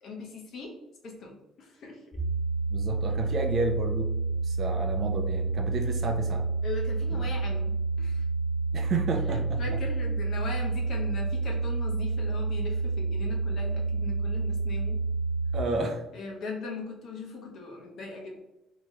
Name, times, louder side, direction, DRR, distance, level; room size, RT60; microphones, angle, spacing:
voice 1, 0.0-0.7 1.0-2.0 6.6-8.2 9.3-15.0 16.1-18.4, left 3 dB, 50° left, 0 dB, 0.9 m, -39 dB
sound 1, 2.1-15.6, right 3 dB, 20° left, 1.1 m, -29 dB
voice 2, 2.7-4.1 4.4-6.5 7.1-7.3 8.7-9.8 15.5-16.0, right 3 dB, 40° right, 4 dB, 0.5 m, -31 dB
3.4 x 2.9 x 2.9 m, 0.98 s
cardioid pair, 155°, 0 cm